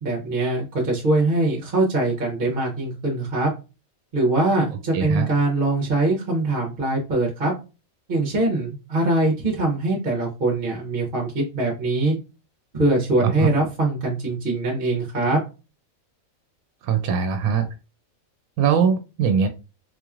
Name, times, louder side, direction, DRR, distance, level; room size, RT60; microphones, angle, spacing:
voice 1, 0.0-3.5 4.1-7.5 8.1-12.2 12.7-15.4, right 2 dB, 45° right, -1 dB, 1.0 m, -22 dB
voice 2, 4.9-5.3 13.2-13.5 16.8-17.7 18.6-19.5, right 6 dB, 85° right, 7 dB, 1.0 m, -21 dB
4.0 x 3.0 x 2.4 m, 0.31 s
omnidirectional pair, 1.5 m